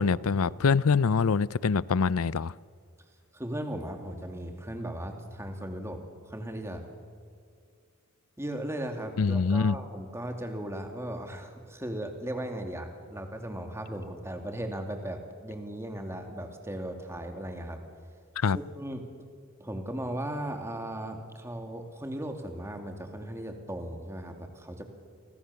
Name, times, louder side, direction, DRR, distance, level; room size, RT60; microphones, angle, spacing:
voice 1, 0.0-2.5 9.2-9.8 18.4-18.6, left 5 dB, 80° left, 0.6 m, -24 dB
voice 2, 3.3-6.0 6.3-6.8 8.4-17.8 18.8-19.1 19.6-24.8, right 1 dB, 10° right, 2.5 m, -37 dB
30.0 x 24.0 x 7.0 m
head